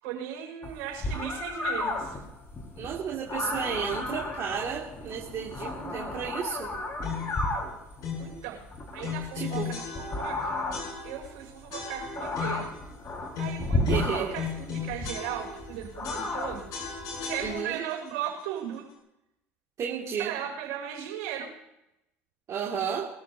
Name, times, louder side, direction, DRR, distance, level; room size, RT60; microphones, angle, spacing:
voice 1, 0.0-2.2 8.2-8.6 8.9-10.6 11.0-12.7 13.4-17.0 17.2-18.9 20.2-21.5, right 10 dB, 75° right, -1 dB, 5.6 m, -37 dB
sound 1, 0.6-17.6, left 2 dB, 35° left, 4.5 m, -34 dB
voice 2, 2.8-6.7 9.3-9.7 13.9-14.4 17.4-17.8 19.8-20.3 22.5-23.1, right 7 dB, 45° right, -3 dB, 2.3 m, -32 dB
sound 2, 7.0-7.4 8.0-8.4 9.0-10.4 10.7-11.3 11.7-12.8 13.3-15.7 16.0-17.9, left 7 dB, 60° left, 7.2 m, -36 dB
23.5 x 14.0 x 2.8 m, 0.88 s
hypercardioid pair, 75°, 7 cm